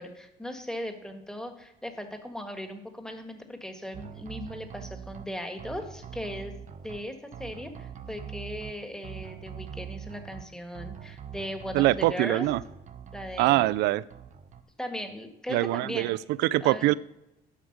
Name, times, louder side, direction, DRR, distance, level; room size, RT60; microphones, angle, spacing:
voice 1, 0.0-6.5 6.8-12.5 13.1-13.8 14.8-16.2 16.6-16.9, equal, 5° left, 1.6 m, -38 dB
sound 1, 3.9-5.3 5.6-7.0 7.3-8.7 9.0-10.4 10.7-12.1 12.4-13.8 14.1-14.6, right 8 dB, 45° right, 1.0 m, -43 dB
voice 2, 11.7-12.6 13.4-14.0 15.5-16.9, right 17 dB, 85° right, 0.4 m, -24 dB
11.5 x 4.9 x 6.6 m
cardioid pair, 110°, 17 cm